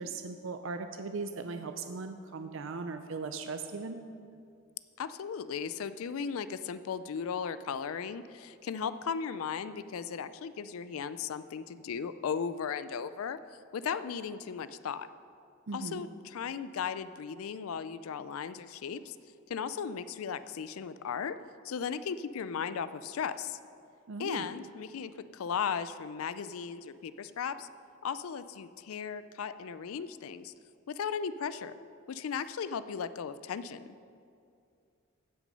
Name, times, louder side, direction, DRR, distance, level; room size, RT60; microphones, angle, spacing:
voice 1, 0.0-4.0 15.7-16.0 24.1-24.5, right 4 dB, 60° right, 7 dB, 0.5 m, -38 dB
voice 2, 5.0-15.1 15.7-19.2 19.5-21.4 21.6-23.6 24.2-27.7 28.0-30.5 30.9-31.7 32.1-33.9, left 6 dB, 75° left, 14 dB, 0.4 m, -36 dB
16.0 x 6.2 x 5.3 m, 2.5 s
head